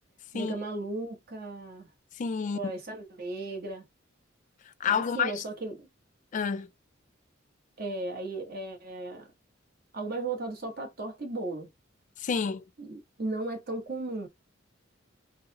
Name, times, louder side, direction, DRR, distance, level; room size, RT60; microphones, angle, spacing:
voice 1, 0.3-1.9 2.5-3.9 4.9-5.9 7.8-9.3 9.9-11.7 12.8-14.3, right 2 dB, 50° right, 1.0 m, -36 dB
voice 2, 2.2-2.7 4.8-5.4 6.3-6.7 12.2-12.6, left 6 dB, 40° left, 0.3 m, -29 dB
3.8 x 2.0 x 2.8 m
head